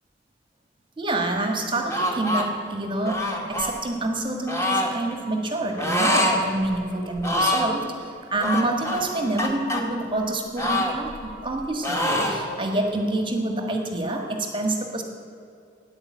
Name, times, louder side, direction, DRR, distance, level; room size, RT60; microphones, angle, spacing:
voice 1, 1.0-15.0, right 2 dB, 25° right, 4 dB, 1.5 m, -27 dB
sound 1, 1.9-2.5 3.1-3.7 4.5-4.9 5.8-6.4 6.7-6.8 7.2-7.8 8.4-9.8 10.6-11.6 11.8-12.4, left 1 dB, 15° left, 1.9 m, -25 dB
13.5 x 9.8 x 8.5 m, 2.5 s
head